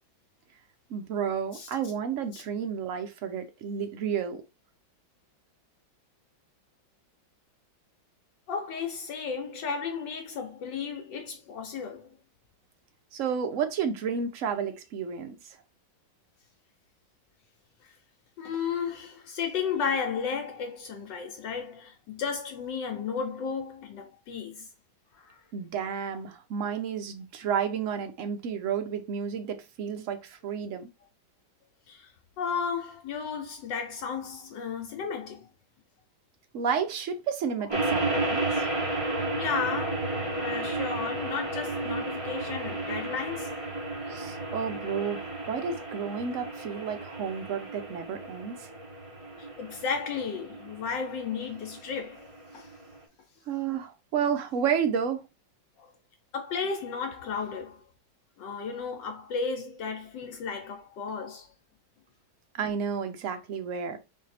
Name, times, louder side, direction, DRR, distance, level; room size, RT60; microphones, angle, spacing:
voice 1, 0.9-4.4 13.1-15.4 25.5-30.9 36.5-38.7 44.0-48.7 53.5-55.3 62.5-64.0, right 7 dB, 65° right, 0.8 m, -31 dB
voice 2, 8.5-12.2 18.4-24.7 25.1-25.4 31.9-32.1 32.4-35.5 39.3-43.5 49.4-52.3 52.5-52.7 55.8-55.9 56.3-57.8 58.4-61.5, left 6 dB, 75° left, 1.3 m, -34 dB
sound 1, 37.7-53.0, right 2 dB, 25° right, 0.9 m, -33 dB
4.0 x 2.7 x 4.1 m
omnidirectional pair, 2.1 m